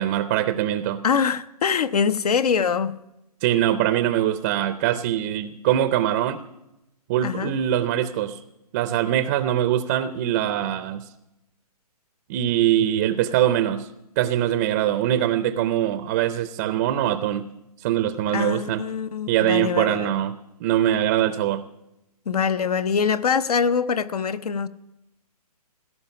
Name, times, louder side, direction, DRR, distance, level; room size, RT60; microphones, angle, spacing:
voice 1, 0.0-1.0 3.4-6.4 7.1-8.4 8.7-11.0 12.3-13.9 14.2-17.5 17.8-18.8 19.3-20.3 20.6-21.6, right 11 dB, 25° right, 0.5 m, -22 dB
voice 2, 1.0-3.0 7.2-7.6 18.3-20.2 22.3-24.7, left 6 dB, 70° left, 0.8 m, -23 dB
17.0 x 12.5 x 5.8 m
hypercardioid pair, 150°, 20 cm